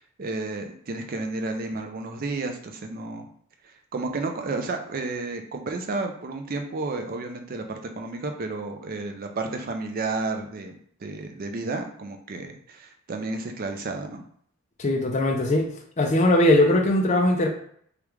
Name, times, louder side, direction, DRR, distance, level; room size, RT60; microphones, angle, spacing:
voice 1, 0.2-3.3 3.9-14.2, right 3 dB, 40° right, 5 dB, 0.4 m, -32 dB
voice 2, 14.8-15.7 16.0-17.5, left 1 dB, 30° left, 2 dB, 0.5 m, -20 dB
3.4 x 2.3 x 3.0 m, 0.63 s
head